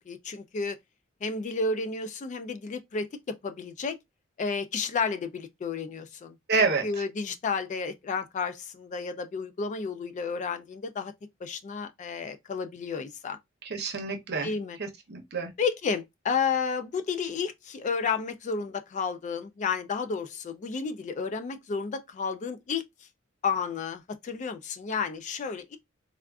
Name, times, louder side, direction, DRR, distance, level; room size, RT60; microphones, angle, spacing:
voice 1, 0.1-0.8 1.2-4.0 4.4-6.3 6.8-11.1 11.4-13.4 14.4-14.8 15.6-22.8 23.4-25.8, left 5 dB, 35° left, 0.3 m, -31 dB
voice 2, 6.5-7.0 13.6-14.5 14.8-15.5, right 4 dB, 55° right, 0.8 m, -28 dB
3.4 x 2.4 x 2.3 m
head